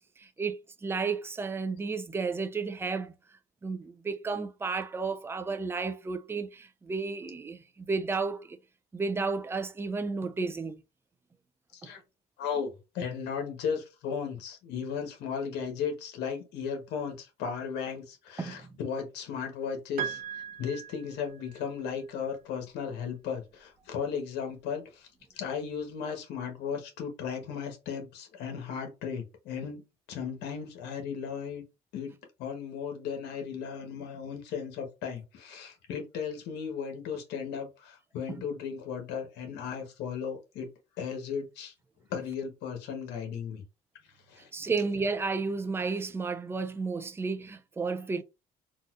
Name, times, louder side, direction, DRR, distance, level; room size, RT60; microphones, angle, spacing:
voice 1, 0.2-3.1 3.6-8.6 8.9-10.8 11.8-11.9 18.4-18.7 44.5-48.2, right 4 dB, 15° right, 0.4 m, -32 dB
voice 2, 12.4-25.1 25.3-29.8 30.1-31.6 31.9-40.7 41.0-41.7 42.1-43.6 44.3-44.5, left 6 dB, 80° left, 1.1 m, -36 dB
Piano, 20.0-21.7, right 8 dB, 65° right, 0.7 m, -38 dB
3.9 x 2.3 x 2.4 m
cardioid pair, 110°, 17 cm